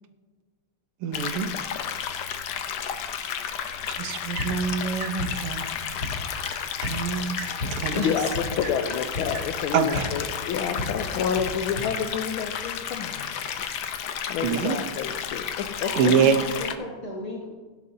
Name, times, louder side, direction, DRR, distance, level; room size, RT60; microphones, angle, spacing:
voice 1, 1.0-1.5 3.9-5.7 6.8-7.4 7.8-8.2 9.7-10.1 14.4-14.8 16.0-16.4, right 6 dB, 85° right, 8 dB, 1.8 m, -25 dB
sound 1, 1.1-16.7, left 8 dB, 65° left, 1.2 m, -32 dB
sound 2, 3.9-12.7, right 3 dB, 50° right, 2.5 m, -45 dB
sound 3, 4.4-11.8, left 2 dB, 40° left, 4.5 m, -36 dB
voice 2, 7.9-13.4 14.3-16.1, left 7 dB, 80° left, 5 dB, 1.5 m, -29 dB
voice 3, 15.8-17.5, left 1 dB, 20° left, -3 dB, 1.2 m, -36 dB
16.0 x 11.0 x 2.7 m, 1.3 s
omnidirectional pair, 2.4 m